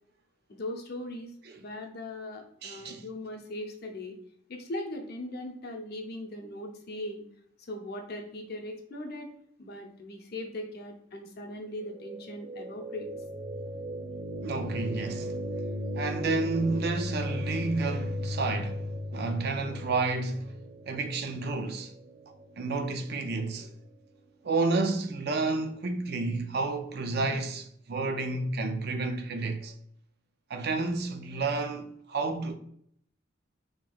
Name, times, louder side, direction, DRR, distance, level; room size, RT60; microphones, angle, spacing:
voice 1, 0.5-1.3 1.6-4.2 4.5-7.2 7.7-9.3 9.6-13.1, left 1 dB, 50° left, 0.6 m, -39 dB
voice 2, 2.6-3.0 14.4-15.3 15.9-20.5 20.9-21.9 22.6-23.7 24.4-29.7 30.5-32.5, right 3 dB, 50° right, 0.4 m, -30 dB
sound 1, 11.9-23.9, left 1 dB, 15° right, 1.2 m, -37 dB
4.3 x 2.8 x 2.3 m
head